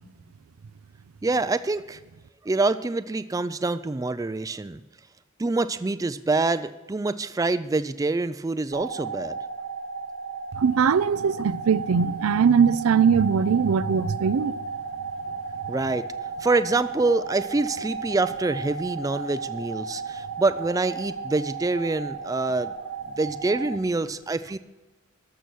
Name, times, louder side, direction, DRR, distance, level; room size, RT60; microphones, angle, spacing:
voice 1, 1.2-2.0 2.4-4.8 5.4-9.4 15.7-16.1 16.4-22.7 23.1-24.6, right 3 dB, 15° right, 0.3 m, -26 dB
sound 1, 8.7-23.8, right 4 dB, 70° right, 1.1 m, -34 dB
voice 2, 10.6-14.5, right 6 dB, 90° right, 0.4 m, -21 dB
12.5 x 6.9 x 6.1 m
head